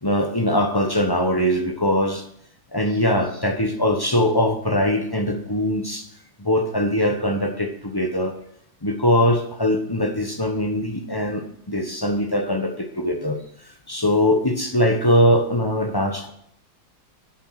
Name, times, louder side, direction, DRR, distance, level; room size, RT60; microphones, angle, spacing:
voice 1, 0.0-2.2 2.7-6.1 6.4-8.3 8.8-13.4 13.9-16.3, left 1 dB, 15° left, 5 dB, 0.8 m, -21 dB
10.0 x 7.6 x 6.4 m, 0.68 s
omnidirectional pair, 2.1 m